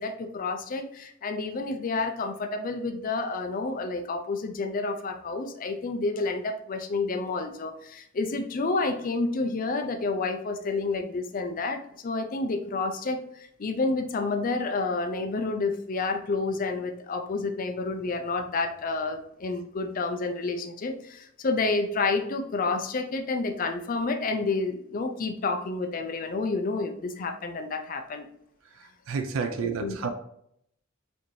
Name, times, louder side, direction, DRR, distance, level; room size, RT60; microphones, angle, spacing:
voice 1, 0.0-28.3 29.6-30.1, left 3 dB, 45° left, 6 dB, 0.4 m, -29 dB
voice 2, 28.7-30.1, right 5 dB, 75° right, 7 dB, 0.4 m, -31 dB
4.2 x 2.7 x 3.1 m, 0.72 s
head